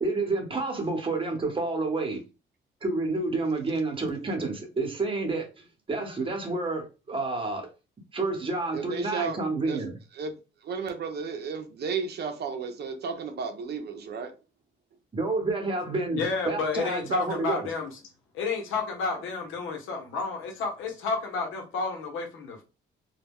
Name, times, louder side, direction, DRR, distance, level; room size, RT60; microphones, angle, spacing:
voice 1, 0.0-2.2 2.8-7.7 8.1-9.9 15.1-17.7, right 3 dB, 25° right, 1.0 m, -29 dB
voice 2, 8.7-9.4 9.7-9.9 10.1-10.3 10.6-14.3, right 5 dB, 55° right, 0.6 m, -33 dB
voice 3, 16.1-17.9 18.3-22.6, left 4 dB, 90° left, 0.8 m, -31 dB
2.3 x 2.1 x 3.5 m
cardioid pair, 90°, 20 cm